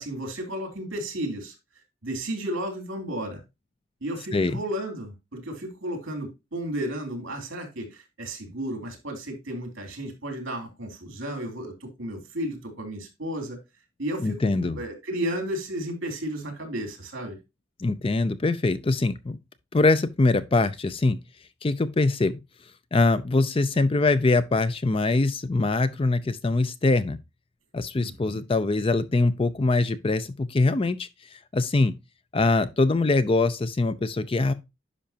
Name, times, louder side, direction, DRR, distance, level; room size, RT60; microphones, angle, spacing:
voice 1, 0.0-1.5 2.0-3.4 4.0-13.6 14.0-17.4 28.0-28.4, right 1 dB, 65° right, 2.9 m, -33 dB
voice 2, 14.2-14.8 17.8-19.4 19.7-21.2 21.6-22.4 22.9-27.2 27.7-31.9 32.3-34.5, left 3 dB, 25° left, 0.4 m, -23 dB
10.5 x 5.6 x 2.8 m
head